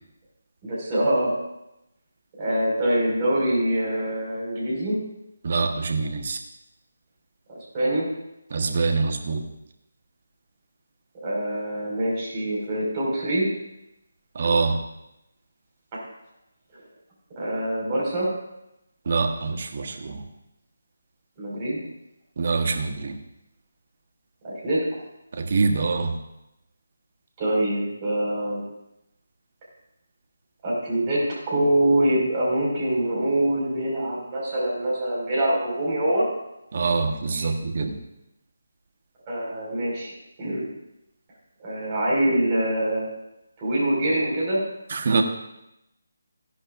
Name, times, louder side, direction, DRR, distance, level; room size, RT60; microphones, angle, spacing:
voice 1, 0.6-1.3 2.4-5.0 7.5-8.1 11.2-13.5 16.7-16.8 17.4-18.3 21.4-21.8 24.4-24.8 27.4-28.6 30.6-36.3 37.3-37.5 39.3-40.1 40.4-40.7 41.6-43.1 43.6-44.6, right 1 dB, 25° right, -5 dB, 5.1 m, -24 dB
voice 2, 5.4-6.4 8.5-9.5 14.3-14.8 19.0-20.2 22.4-23.2 25.3-26.2 36.7-38.0 44.9-45.2, right 4 dB, 50° right, 5 dB, 1.3 m, -24 dB
17.0 x 11.0 x 2.5 m, 0.87 s
figure-of-eight pair, 155°, 0 cm